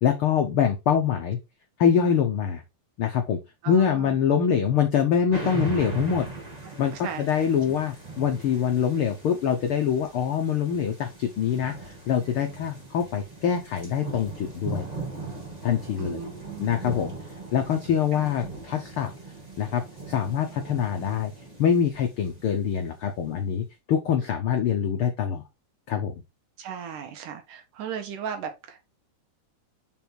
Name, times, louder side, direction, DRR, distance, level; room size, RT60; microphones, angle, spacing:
voice 1, 0.0-1.4 1.8-2.6 3.0-3.4 3.7-6.3 6.8-6.9 7.2-14.9 15.6-16.2 16.6-17.1 17.5-19.1 19.6-21.3 21.6-25.4 25.9-26.2, left 8 dB, 85° left, 1.2 m, -24 dB
voice 2, 3.6-4.2 6.6-7.5 16.0-16.8 18.1-18.2 26.6-28.8, right 7 dB, 75° right, 2.8 m, -37 dB
sound 1, 5.3-23.1, right 3 dB, 15° right, 1.8 m, -39 dB
5.5 x 5.5 x 4.5 m
omnidirectional pair, 3.8 m